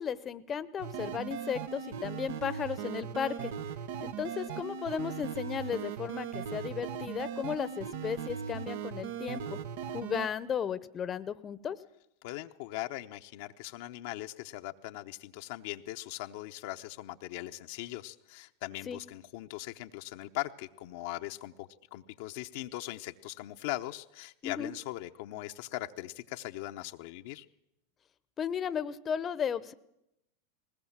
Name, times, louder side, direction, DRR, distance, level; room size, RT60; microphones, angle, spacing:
voice 1, 0.0-3.5 4.0-9.6 9.9-11.8 18.9-19.0 24.4-24.7 28.4-29.7, left 8 dB, 30° left, 16 dB, 0.9 m, -35 dB
sound 1, 0.8-10.3, right 8 dB, 70° right, 1.0 m, -39 dB
voice 2, 12.2-27.4, left 16 dB, 65° left, 6 dB, 0.8 m, -40 dB
20.0 x 18.5 x 7.4 m, 0.84 s
hypercardioid pair, 105°, 0 cm